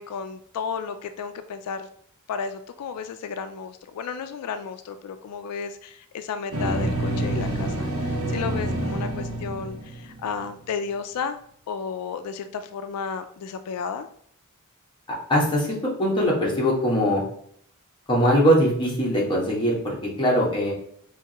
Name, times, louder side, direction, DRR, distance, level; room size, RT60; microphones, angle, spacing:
voice 1, 0.0-1.9 2.3-11.4 11.7-14.1, left 6 dB, 85° left, 9 dB, 0.3 m, -33 dB
sound 1, 6.5-10.5, right 1 dB, 80° right, 0.9 m, -27 dB
voice 2, 15.3-15.7 16.0-17.2 18.1-20.7, equal, 20° left, -4 dB, 1.3 m, -21 dB
4.6 x 3.1 x 2.9 m, 0.65 s
head